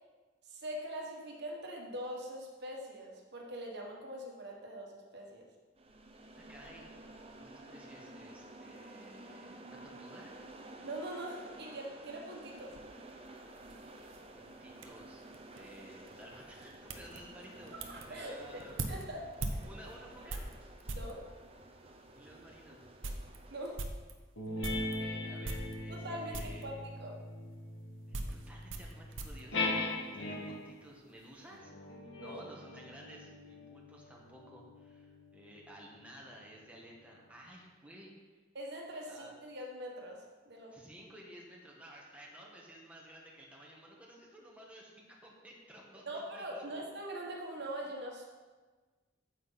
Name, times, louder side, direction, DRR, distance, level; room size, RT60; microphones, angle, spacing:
voice 1, 0.5-5.5 10.8-12.7 17.9-18.4 18.9-19.6 20.9-21.2 23.5-23.8 25.9-27.1 32.2-32.4 38.5-40.8 46.1-48.3, right 1 dB, 60° right, -1 dB, 1.5 m, -43 dB
sound 1, 5.8-23.8, right 2 dB, 30° right, 0.9 m, -52 dB
voice 2, 6.4-6.9 7.3-10.4 14.3-15.2 15.5-18.8 19.6-20.5 22.1-22.8 24.8-26.7 28.1-31.7 32.2-38.1 39.1-39.3 40.7-46.8, right 1 dB, 5° right, -3 dB, 1.4 m, -54 dB
sound 2, 12.5-21.2 21.9-22.0 22.4-22.5 22.8-25.0 25.4-26.1 26.3-26.7 27.5-30.4 30.7-31.3, right 2 dB, 75° right, 0.9 m, -43 dB
sound 3, 24.4-30.8 31.5-36.4, left 2 dB, 70° left, 1.9 m, -40 dB
9.1 x 7.8 x 4.1 m, 1.3 s
head